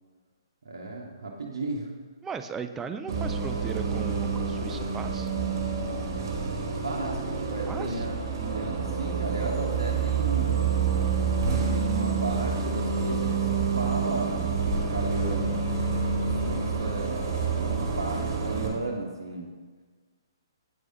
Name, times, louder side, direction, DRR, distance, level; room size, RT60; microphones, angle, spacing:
voice 1, 0.6-1.9 6.7-10.6 11.7-14.5 14.9-15.6 16.2-17.2 17.5-19.5, right 3 dB, 70° right, -1 dB, 0.7 m, -34 dB
voice 2, 2.2-5.3 7.7-8.0, right 6 dB, 15° right, 9 dB, 0.3 m, -37 dB
Bus, 3.1-18.7, right 5 dB, 55° right, 1.2 m, -28 dB
8.4 x 4.7 x 2.7 m, 1.4 s
figure-of-eight pair, 130°, 2 cm